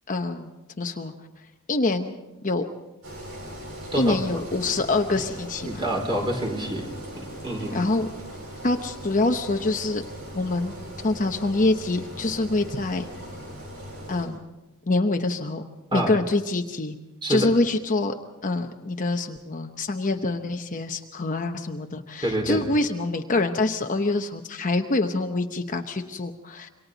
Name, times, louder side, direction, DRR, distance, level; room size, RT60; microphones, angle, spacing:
voice 1, 0.1-0.5 0.8-1.1 1.7-2.1 2.4-2.6 4.0-5.8 7.7-8.1 8.6-10.0 10.3-10.7 11.0-13.1 14.1-14.4 14.9-15.6 15.9-17.0 17.3-18.1 18.4-26.7, left 2 dB, 35° left, 5 dB, 0.9 m, -25 dB
Engine, 3.0-14.3, equal, 85° right, 7.2 m, -39 dB
voice 2, 5.6-6.9 7.4-7.8 15.9-16.1 17.2-17.5 22.2-22.6, right 1 dB, 20° right, 0 dB, 4.7 m, -26 dB
27.5 x 24.5 x 4.0 m, 1.0 s
head